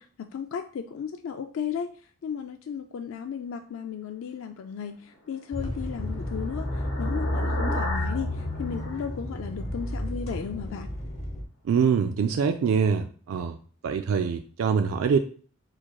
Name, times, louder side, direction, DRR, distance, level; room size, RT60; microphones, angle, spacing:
voice 1, 0.0-1.9 2.2-10.9, left 7 dB, 70° left, 7 dB, 0.3 m, -35 dB
sound 1, 5.2-9.9, left 2 dB, 85° left, 1.3 m, -37 dB
sound 2, 5.5-11.4, left 1 dB, 30° left, 1.0 m, -31 dB
voice 2, 11.6-13.6 13.8-15.2, right 6 dB, 75° right, 7 dB, 0.3 m, -24 dB
4.6 x 4.3 x 2.3 m, 0.42 s
head